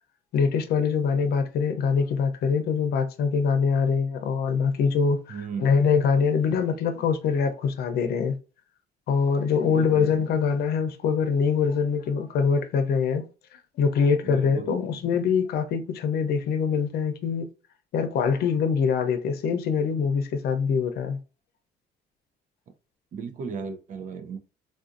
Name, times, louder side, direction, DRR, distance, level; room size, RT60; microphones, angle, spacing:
voice 1, 0.3-5.2 5.6-8.4 9.1-13.2 13.5-17.5 17.9-21.2, left 6 dB, 70° left, 0.6 m, -24 dB
voice 2, 5.3-5.7 9.6-10.3 14.2-14.9 23.1-24.4, right 5 dB, 50° right, 0.6 m, -36 dB
3.6 x 2.5 x 2.5 m
cardioid pair, 110°, 17 cm